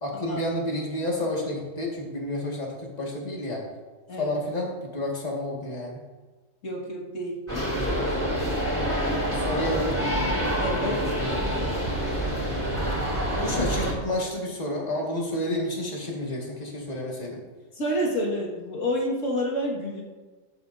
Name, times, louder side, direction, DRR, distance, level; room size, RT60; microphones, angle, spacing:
voice 1, 0.0-3.6 4.2-6.0 9.3-9.9 13.4-17.4, left 1 dB, 35° left, -2 dB, 1.9 m, -30 dB
voice 2, 6.6-7.4 10.6-11.0 17.8-20.0, equal, 85° left, -2 dB, 2.2 m, -28 dB
sound 1, 7.5-13.9, equal, 25° right, 3.3 m, -26 dB
15.0 x 8.3 x 2.6 m, 1.3 s
omnidirectional pair, 1.3 m